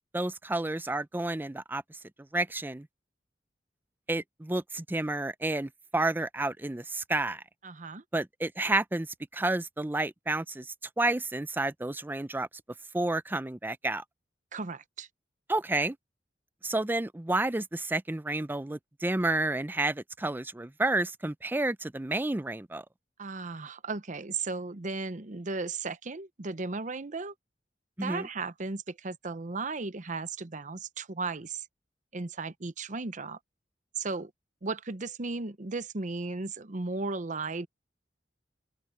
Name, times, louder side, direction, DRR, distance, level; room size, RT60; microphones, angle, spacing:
voice 1, 0.1-1.8 2.3-2.9 4.1-7.4 8.1-9.1 9.3-10.7 11.0-12.5 12.9-14.0 15.5-16.0 16.6-22.8 28.0-28.3, right 2 dB, 10° right, 0.5 m, -30 dB
voice 2, 7.6-8.0 14.5-15.1 23.2-27.3 28.0-31.7 32.1-33.4 34.0-34.3 34.6-37.7, right 3 dB, 45° right, 0.8 m, -35 dB
head